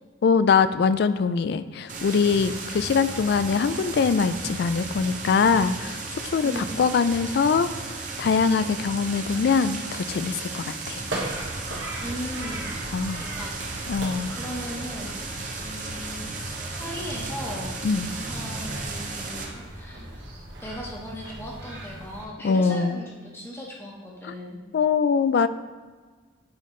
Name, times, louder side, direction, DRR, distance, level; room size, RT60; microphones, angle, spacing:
voice 1, 0.2-11.0 12.9-13.2 13.9-14.4 17.8-18.1 22.4-23.0 24.3-24.4 24.7-25.5, left 5 dB, 60° left, 13 dB, 0.3 m, -23 dB
sound 1, 1.9-19.5, right 3 dB, 45° right, 0.8 m, -35 dB
voice 2, 6.4-6.8 12.0-13.0 13.3-13.8 14.3-17.7 18.3-20.2 20.6-24.6, equal, 15° left, -3 dB, 1.2 m, -37 dB
sound 2, 11.0-22.2, right 1 dB, 70° right, 1.3 m, -38 dB
8.7 x 4.1 x 3.2 m, 1.4 s
head